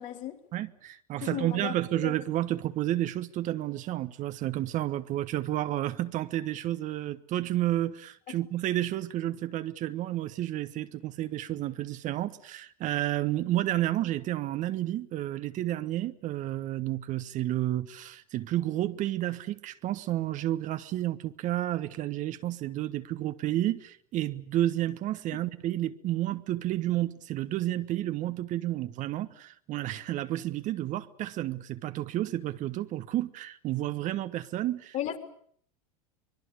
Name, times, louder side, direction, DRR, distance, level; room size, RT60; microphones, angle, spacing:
voice 1, 0.0-0.4 1.2-1.7 2.0-2.1 8.3-8.4 25.3-25.4 34.9-35.2, left 12 dB, 40° left, 3.8 m, -35 dB
voice 2, 0.5-35.0, right 14 dB, 40° right, 1.3 m, -31 dB
25.0 x 22.0 x 8.4 m
hypercardioid pair, 85°, 19 cm